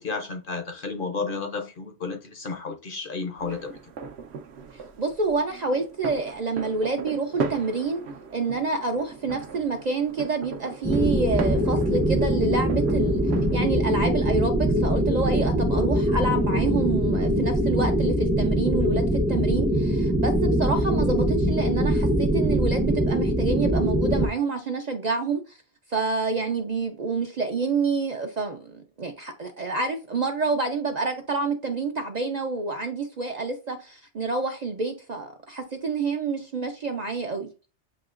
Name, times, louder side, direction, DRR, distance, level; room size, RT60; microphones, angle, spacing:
voice 1, 0.0-3.8, left 4 dB, 55° left, 0.8 m, -32 dB
sound 1, 3.4-13.6, right 5 dB, 70° right, 0.9 m, -37 dB
voice 2, 5.0-8.0 8.3-13.2 13.5-19.0 19.3-25.6 25.9-37.5, right 3 dB, 50° right, 0.5 m, -28 dB
sound 2, 10.8-24.3, right 1 dB, 5° right, 0.6 m, -23 dB
7.8 x 2.8 x 2.4 m
omnidirectional pair, 1.2 m